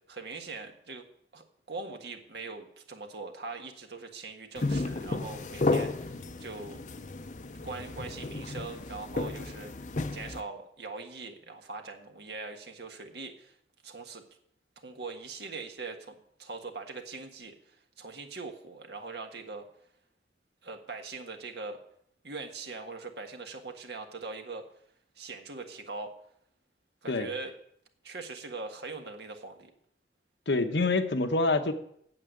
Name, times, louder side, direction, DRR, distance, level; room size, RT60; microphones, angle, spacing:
voice 1, 0.1-1.1 1.3-6.8 7.6-9.7 10.1-13.5 13.8-14.2 14.8-17.5 18.0-19.7 20.6-21.8 22.2-24.6 25.2-26.1 27.0-27.5 28.0-29.7, right 3 dB, 70° right, 4 dB, 1.5 m, -41 dB
sound 1, 4.6-10.4, left 2 dB, 45° left, 0.7 m, -33 dB
voice 2, 30.5-31.7, left 3 dB, 85° left, 7 dB, 1.1 m, -26 dB
8.9 x 8.2 x 7.8 m, 0.71 s
head